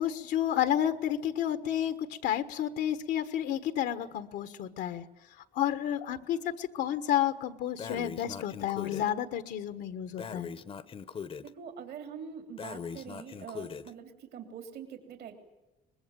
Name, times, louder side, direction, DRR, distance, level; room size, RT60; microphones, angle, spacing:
voice 1, 0.0-5.0 5.3-10.5, left 10 dB, 80° left, 10 dB, 1.4 m, -31 dB
Breathing, 7.8-9.1 10.2-11.5 12.6-13.9, left 6 dB, 35° left, 0.8 m, -40 dB
voice 2, 11.4-15.4, right 7 dB, 70° right, 5 dB, 3.2 m, -44 dB
24.0 x 20.5 x 9.1 m, 0.99 s
cardioid pair, 110°, 17 cm